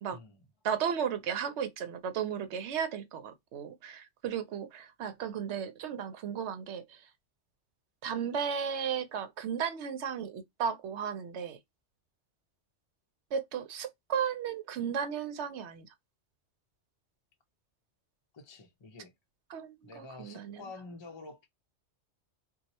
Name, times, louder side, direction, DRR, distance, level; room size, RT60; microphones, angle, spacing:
voice 1, 0.1-0.4 18.3-19.1 19.8-21.5, left 3 dB, 35° left, 0.5 m, -48 dB
voice 2, 0.6-7.1 8.0-11.6 13.3-15.9 19.5-20.6, right 7 dB, 75° right, 0.9 m, -35 dB
2.8 x 2.3 x 4.1 m
omnidirectional pair, 1.2 m